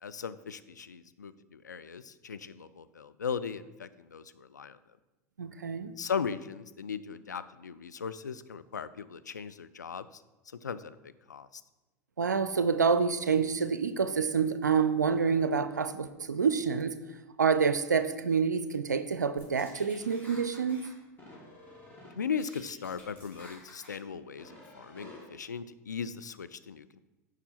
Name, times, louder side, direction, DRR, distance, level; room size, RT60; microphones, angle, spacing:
voice 1, 0.0-4.8 6.0-11.6 22.2-27.0, left 6 dB, 85° left, 12 dB, 0.4 m, -38 dB
voice 2, 5.4-5.9 12.2-17.0 17.4-20.8, right 6 dB, 85° right, 12 dB, 0.4 m, -27 dB
sound 1, 19.4-20.9 21.2-22.1 22.4-24.0 24.4-25.2, left 1 dB, 20° left, 3.1 m, -51 dB
7.7 x 4.9 x 5.7 m, 1.1 s
figure-of-eight pair, 80°, 9 cm